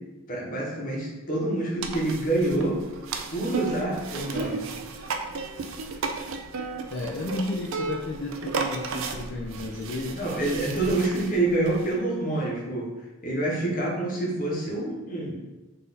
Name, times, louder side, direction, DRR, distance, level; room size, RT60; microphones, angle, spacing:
voice 1, 0.3-2.8 3.3-4.6 10.1-12.9 13.2-15.4, right 2 dB, 40° left, -3 dB, 1.0 m, -27 dB
sound 1, 1.8-11.9, right 4 dB, 60° right, 0.4 m, -34 dB
voice 2, 6.9-10.2, left 2 dB, 55° left, -1 dB, 0.4 m, -32 dB
4.0 x 2.6 x 4.0 m, 1.1 s
head